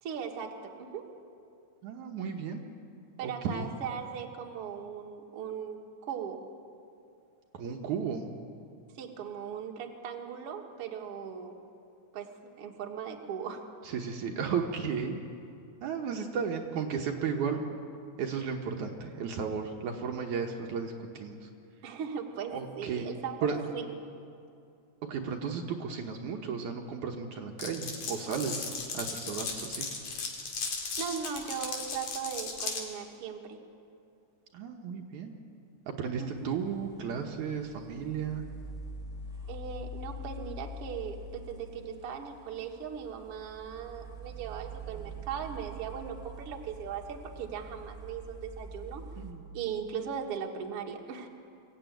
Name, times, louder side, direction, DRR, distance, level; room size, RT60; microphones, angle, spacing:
voice 1, 0.0-1.1 3.2-6.4 9.0-11.6 12.1-12.3 12.6-13.6 21.8-23.9 31.0-33.6 36.2-36.5 39.5-49.0 49.5-51.3, right 7 dB, 50° right, 2 dB, 2.2 m, -38 dB
voice 2, 1.8-2.6 3.2-3.7 7.5-8.3 13.9-15.2 15.8-17.6 18.2-21.5 22.5-23.1 23.4-23.6 25.1-28.7 28.9-29.9 34.5-35.4 35.9-38.4 49.2-49.4, right 6 dB, 70° right, 2 dB, 2.5 m, -34 dB
Glass, 27.6-32.8, left 4 dB, 70° left, 3.8 m, -36 dB
sound 1, 36.4-49.3, equal, ahead, 1.2 m, -44 dB
23.5 x 15.0 x 9.1 m, 2.5 s
omnidirectional pair, 3.7 m